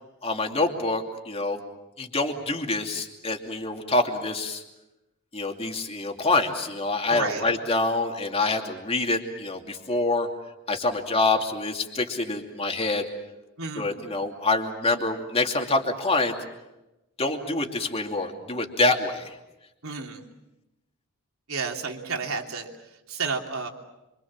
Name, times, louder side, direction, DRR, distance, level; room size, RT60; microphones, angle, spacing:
voice 1, 0.2-1.6 2.0-4.6 5.3-10.3 10.7-13.1 13.8-16.4 17.2-19.4, left 2 dB, 30° left, 3 dB, 2.7 m, -26 dB
voice 2, 7.1-7.5 13.6-14.0 19.8-20.2 21.5-23.7, right 4 dB, 85° right, 2 dB, 3.1 m, -31 dB
26.5 x 25.5 x 7.4 m, 0.98 s
head